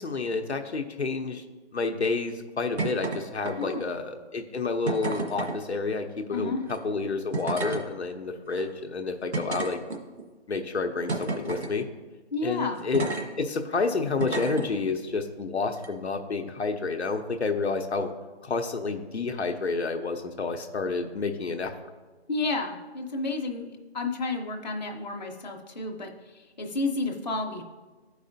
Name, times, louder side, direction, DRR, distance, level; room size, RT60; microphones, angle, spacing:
voice 1, 0.0-1.4 1.7-9.8 10.5-11.9 12.4-13.1 13.4-18.1 18.4-21.7, left 4 dB, 75° left, 5 dB, 0.8 m, -29 dB
sound 1, 2.8-3.2 3.4-3.9 4.9-5.6 6.6-6.8 7.3-7.8 8.5-8.6 9.3-10.2 11.1-11.7 12.9-13.2 14.2-14.7 15.7-15.9, right 3 dB, 80° right, 1.6 m, -31 dB
voice 2, 3.6-3.9 6.3-6.6 12.3-12.8 22.3-27.6, left 3 dB, 40° left, 1 dB, 0.8 m, -31 dB
12.5 x 4.8 x 2.7 m, 1.3 s
figure-of-eight pair, 165°, 33 cm